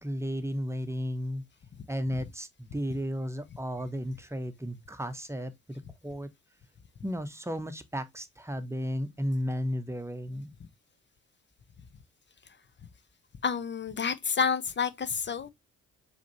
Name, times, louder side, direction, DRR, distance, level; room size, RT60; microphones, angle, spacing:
voice 1, 0.0-1.4 1.9-6.3 7.0-10.5, equal, 5° right, 0.9 m, -34 dB
voice 2, 13.4-15.5, left 6 dB, 30° left, 0.6 m, -29 dB
4.9 x 3.3 x 2.8 m
figure-of-eight pair, 40°, 40 cm